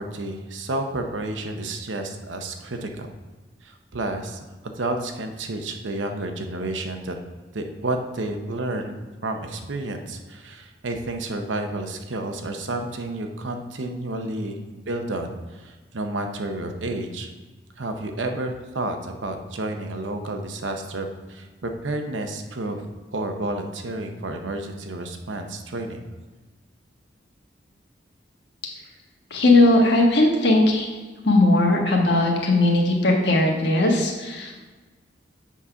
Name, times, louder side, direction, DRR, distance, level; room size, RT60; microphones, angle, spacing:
voice 1, 0.0-3.1 3.6-7.2 7.5-9.0 9.2-14.6 14.9-17.3 17.8-22.8 23.1-26.0, right 2 dB, 90° right, 5 dB, 0.8 m, -30 dB
voice 2, 29.3-30.9 31.2-34.6, left 2 dB, 70° left, 0 dB, 1.4 m, -18 dB
7.4 x 4.1 x 5.7 m, 1.3 s
head